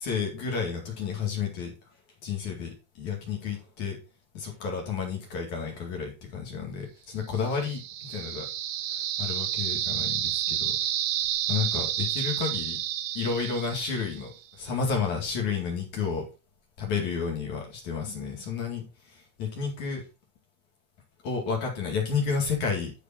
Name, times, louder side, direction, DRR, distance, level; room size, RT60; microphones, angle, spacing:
voice 1, 0.0-1.7 2.2-4.0 4.3-8.5 8.9-10.8 11.5-12.8 13.1-14.3 14.6-16.3 16.8-20.0 21.2-22.9, left 5 dB, 50° left, 1 dB, 3.2 m, -31 dB
sound 1, 7.4-14.3, right 11 dB, 80° right, 2.0 m, -30 dB
11.0 x 5.0 x 4.3 m, 0.30 s
omnidirectional pair, 4.9 m